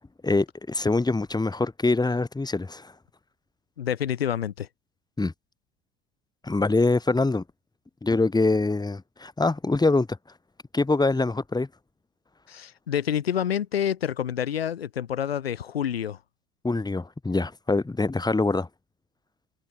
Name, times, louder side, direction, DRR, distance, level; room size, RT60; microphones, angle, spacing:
voice 1, 0.2-2.9 5.2-5.3 6.4-7.4 8.0-10.1 10.7-11.7 16.6-18.7, left 3 dB, 15° left, 3.4 m, -24 dB
voice 2, 3.8-4.7 12.5-16.2, left 9 dB, 85° left, 1.3 m, -28 dB
hypercardioid pair, 65°, 29 cm